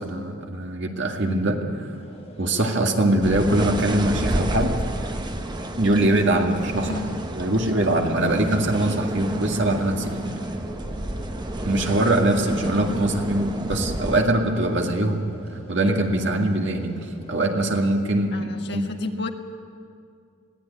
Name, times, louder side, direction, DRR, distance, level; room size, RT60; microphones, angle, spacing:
voice 1, 0.0-1.9 2.4-4.8 5.8-7.0 7.4-10.3 11.6-15.3 15.7-16.9 17.3-18.3 18.7-18.8, right 1 dB, 60° right, 2 dB, 2.1 m, -22 dB
sound 1, 1.8-17.8, equal, 30° left, 6.3 m, -43 dB
Storm on roofgarden, 3.2-14.2, right 1 dB, 20° right, 0.9 m, -30 dB
voice 2, 18.3-19.3, left 2 dB, 55° left, 4 dB, 1.6 m, -31 dB
21.5 x 16.5 x 9.7 m, 2.3 s
head